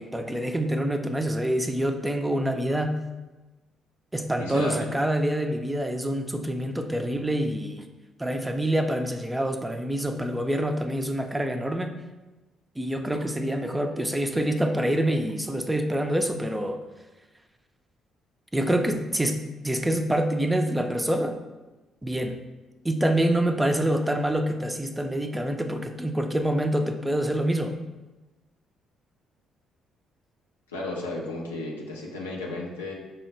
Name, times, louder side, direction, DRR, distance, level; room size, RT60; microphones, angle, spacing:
voice 1, 0.0-3.0 4.1-7.9 8.2-11.9 12.8-16.8 18.5-21.4 22.0-22.4 22.8-27.8, right 1 dB, 15° right, 6 dB, 0.4 m, -26 dB
voice 2, 4.4-4.9 30.7-32.9, left 2 dB, 90° left, -2 dB, 0.5 m, -33 dB
5.3 x 2.1 x 3.0 m, 1.1 s
hypercardioid pair, 45°, 0 cm